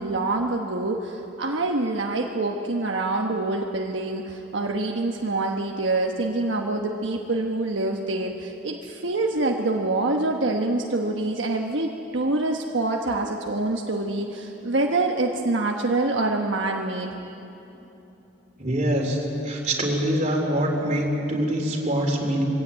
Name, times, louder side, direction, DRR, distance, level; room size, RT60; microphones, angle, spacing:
voice 1, 0.0-17.2, right 2 dB, 75° right, 1 dB, 1.2 m, -26 dB
voice 2, 18.6-22.4, right 1 dB, 40° right, 0 dB, 3.6 m, -24 dB
22.5 x 16.0 x 9.0 m, 3.0 s
head